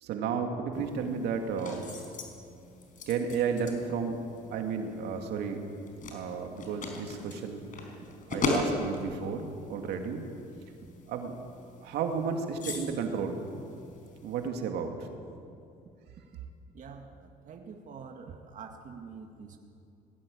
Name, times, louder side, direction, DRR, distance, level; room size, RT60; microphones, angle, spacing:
voice 1, 0.0-1.9 3.1-4.2 4.5-5.6 6.1-7.6 8.3-10.2 11.1-11.3 11.8-13.4 14.2-15.1, right 6 dB, 80° right, 4 dB, 2.4 m, -32 dB
sound 1, 0.7-14.5, left 3 dB, 50° left, 4.5 m, -39 dB
voice 2, 16.8-17.1 17.5-19.6, right 5 dB, 50° right, 3 dB, 1.9 m, -45 dB
20.5 x 16.5 x 8.6 m, 2.5 s
cardioid pair, 110°, 17 cm